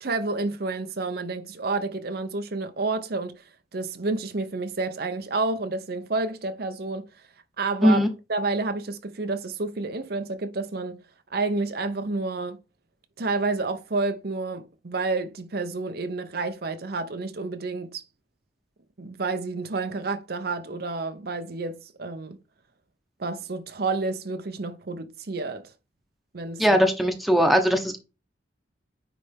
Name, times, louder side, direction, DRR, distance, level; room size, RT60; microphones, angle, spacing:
voice 1, 0.0-3.4 3.7-7.1 7.6-8.0 8.3-11.0 11.3-12.6 13.2-18.0 19.0-22.4 23.2-25.7 26.3-26.8, right 3 dB, 55° right, 0.7 m, -29 dB
voice 2, 26.6-28.0, equal, ahead, 1.0 m, -20 dB
9.6 x 3.4 x 3.5 m
head